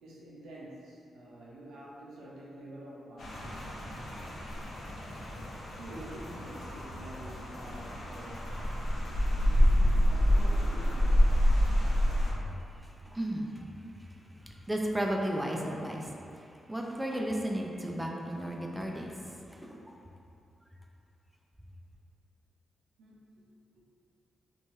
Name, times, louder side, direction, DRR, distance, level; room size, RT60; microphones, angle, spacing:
voice 1, 0.0-3.7 5.8-9.1 9.4-11.7 23.0-23.3 23.8-23.9, right 1 dB, 85° right, -5 dB, 0.5 m, -48 dB
Rain, 3.2-12.3, equal, 65° left, 0.6 m, -28 dB
voice 2, 12.2-13.7 14.0-19.2 19.5-20.0, equal, 10° right, 0 dB, 0.3 m, -35 dB
2.7 x 2.2 x 3.0 m, 2.6 s
cardioid pair, 65°, 0 cm